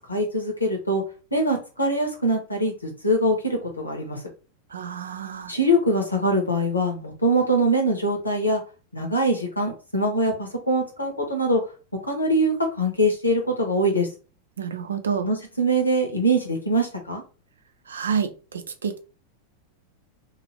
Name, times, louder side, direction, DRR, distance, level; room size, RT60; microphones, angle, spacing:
voice 1, 0.1-1.0 1.3-4.2 5.5-8.6 8.9-11.6 12.1-14.1 15.2-17.2, right 1 dB, 85° left, 1.1 m, -23 dB
voice 2, 4.7-5.5 14.6-15.3 17.9-19.0, right 6 dB, 70° right, 0.5 m, -29 dB
2.8 x 2.6 x 3.2 m
figure-of-eight pair, 90°, 0 cm